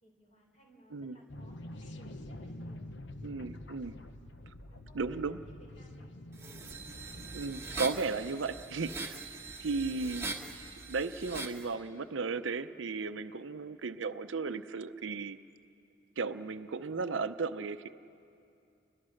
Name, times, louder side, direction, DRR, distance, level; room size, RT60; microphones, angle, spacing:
voice 1, 0.0-3.0 3.9-4.1 4.7-6.6 9.4-9.5, equal, 35° left, 1 dB, 4.2 m, -62 dB
sound 1, 1.3-7.9, left 1 dB, 65° left, 1.0 m, -47 dB
voice 2, 3.2-4.0 4.9-5.4 7.3-9.2 9.6-10.3 10.9-15.4 16.2-17.9, right 4 dB, 75° right, 11 dB, 0.6 m, -35 dB
sound 2, 6.4-11.7, right 3 dB, 15° right, 1.3 m, -42 dB
Boom, 6.7-11.4, right 1 dB, 50° right, 1.1 m, -57 dB
29.0 x 21.0 x 6.5 m, 2.6 s
head